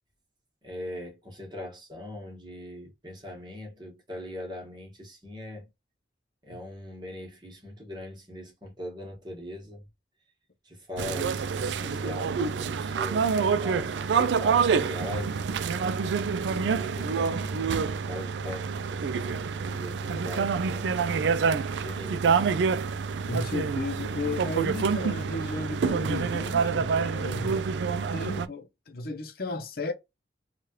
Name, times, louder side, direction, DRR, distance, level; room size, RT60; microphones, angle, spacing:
voice 1, 0.6-5.7 6.4-9.9 10.6-15.4 16.4-21.3 21.8-22.7, left 1 dB, 25° right, 1.2 m, -41 dB
sound 1, 11.0-28.5, right 5 dB, 75° right, 0.3 m, -27 dB
voice 2, 23.2-27.8 28.1-29.9, left 2 dB, 55° left, 0.6 m, -34 dB
3.1 x 2.4 x 2.8 m
head